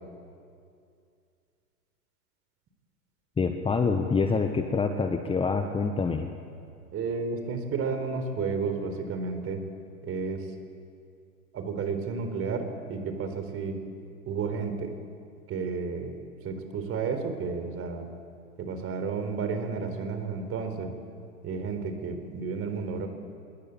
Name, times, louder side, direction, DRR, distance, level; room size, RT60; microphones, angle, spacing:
voice 1, 3.4-6.3, left 4 dB, 10° left, 6 dB, 1.3 m, -26 dB
voice 2, 6.9-9.6 10.0-10.5 11.5-13.8 14.3-14.9 15.5-16.2 16.4-18.1 18.6-20.9 21.4-23.1, right 5 dB, 30° right, 7 dB, 4.3 m, -32 dB
25.5 x 21.5 x 8.8 m, 2.4 s
figure-of-eight pair, 100°, 46 cm